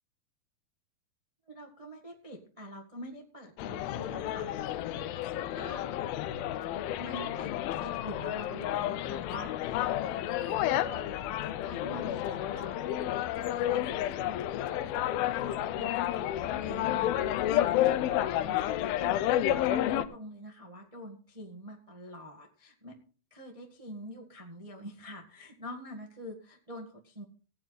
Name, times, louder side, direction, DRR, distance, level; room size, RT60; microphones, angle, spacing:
voice 1, 1.5-5.9 7.0-23.0 23.3-27.2, equal, 40° right, 2 dB, 0.5 m, -46 dB
sound 1, 3.6-20.0, left 12 dB, 80° left, 2.5 m, -31 dB
17.0 x 9.5 x 4.1 m, 0.38 s
omnidirectional pair, 4.3 m